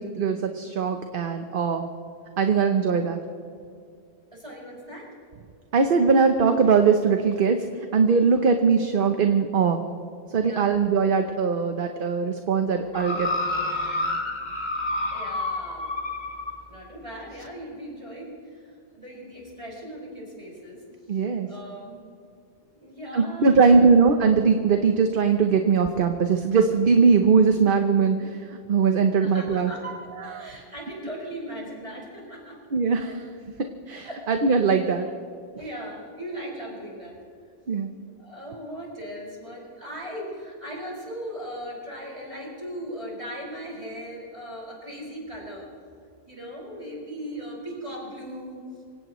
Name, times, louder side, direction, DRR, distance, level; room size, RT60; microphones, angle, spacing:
voice 1, 0.0-1.8 2.4-3.2 5.7-7.6 7.9-9.8 10.3-13.3 21.1-21.5 23.1-28.3 28.7-29.7 30.4-30.6 32.7-33.3 33.9-35.1 37.7-37.9, right 5 dB, 55° right, 6 dB, 1.0 m, -20 dB
voice 2, 4.3-5.1 10.4-10.7 15.1-15.9 16.7-22.1 22.7-24.0 29.2-30.1 30.4-32.6 34.0-34.3 35.6-37.2 38.1-45.7 46.3-48.6, equal, 30° right, -4 dB, 5.6 m, -38 dB
sound 1, 12.9-16.6 17.4-17.5, left 2 dB, 40° left, 1.5 m, -29 dB
26.0 x 17.0 x 3.1 m, 2.3 s
omnidirectional pair, 1.1 m